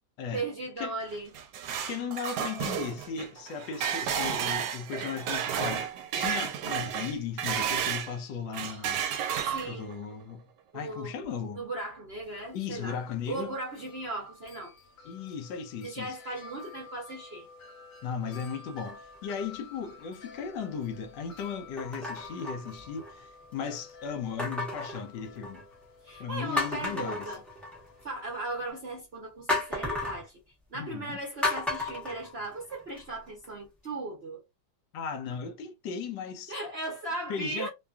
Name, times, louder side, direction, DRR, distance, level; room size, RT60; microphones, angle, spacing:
voice 1, 0.3-1.3 9.5-9.9 10.7-11.1 11.5-13.0 13.3-14.7 15.8-17.5 26.0-27.4 28.0-30.3 30.7-34.4 36.5-37.7, right 2 dB, 55° right, 0.7 m, -37 dB
sound 1, 1.1-8.1 8.5-9.9, right 8 dB, 75° right, 1.1 m, -32 dB
voice 2, 1.8-9.1 9.7-10.4 10.7-11.7 12.5-13.6 15.0-16.2 18.0-25.7 26.2-27.3 30.7-31.2 34.9-36.5 37.3-37.7, left 6 dB, 80° left, 1.3 m, -36 dB
Wind chime, 12.2-28.7, left 3 dB, 50° left, 1.2 m, -51 dB
sound 2, 18.8-19.3 20.0-20.1 21.8-23.2 24.4-25.7 26.2-26.3 26.6-28.0 29.5-30.2 31.4-33.0 33.4-33.5, left 2 dB, ahead, 0.3 m, -34 dB
3.1 x 2.3 x 2.2 m
omnidirectional pair, 2.0 m